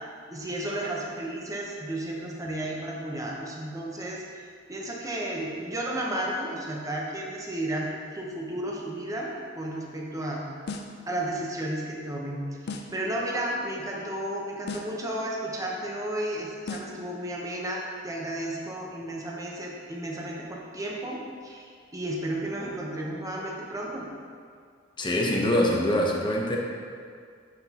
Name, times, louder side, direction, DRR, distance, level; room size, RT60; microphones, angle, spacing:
voice 1, 0.3-7.9 8.1-9.3 9.5-10.4 11.1-24.1, right 1 dB, 15° right, -2 dB, 0.9 m, -33 dB
sound 1, 10.7-11.1 12.7-13.1 14.7-15.1 16.7-17.1, left 3 dB, 55° left, 0.4 m, -37 dB
voice 2, 25.0-26.6, left 1 dB, 25° left, -1 dB, 0.8 m, -24 dB
7.6 x 5.9 x 2.9 m, 2.1 s
head